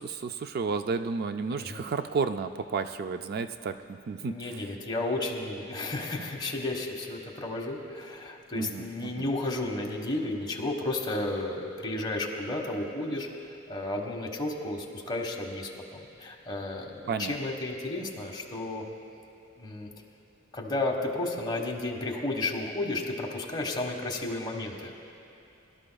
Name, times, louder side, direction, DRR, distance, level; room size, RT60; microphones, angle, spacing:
voice 1, 0.0-4.6 8.5-9.3 17.1-17.4, right 5 dB, 50° right, 9 dB, 0.3 m, -32 dB
voice 2, 1.5-1.8 4.2-13.3 13.7-18.8 19.6-19.9 20.5-24.9, left 2 dB, 20° left, 0 dB, 1.3 m, -33 dB
22.5 x 12.5 x 2.3 m, 2.8 s
head